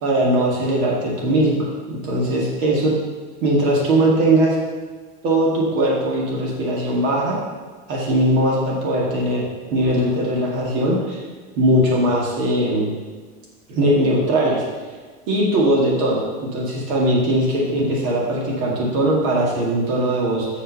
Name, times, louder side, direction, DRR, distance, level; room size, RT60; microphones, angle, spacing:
voice 1, 0.0-2.9 3.4-4.6 5.2-7.4 7.9-9.5 9.7-11.2 11.6-12.9 13.7-14.6 15.3-20.5, right 1 dB, 65° right, -3 dB, 2.1 m, -20 dB
6.6 x 5.6 x 6.4 m, 1.5 s
supercardioid pair, 165°, 45 cm